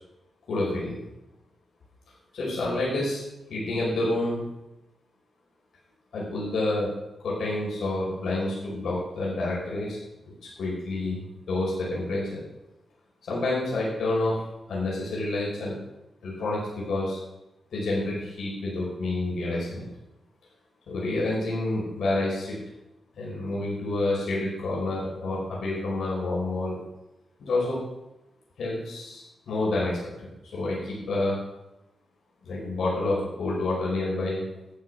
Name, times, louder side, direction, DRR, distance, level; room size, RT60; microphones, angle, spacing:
voice 1, 0.5-0.9 2.3-3.2 3.5-4.5 6.1-6.9 7.2-10.0 10.6-12.4 13.3-14.4 14.7-15.8 16.2-17.2 17.7-19.8 20.9-22.6 23.1-26.8 27.4-27.8 28.6-31.4 32.4-34.4, left 2 dB, 80° left, -6 dB, 5.1 m, -28 dB
12.5 x 7.4 x 6.4 m, 0.93 s
wide cardioid pair, 110°, 0 cm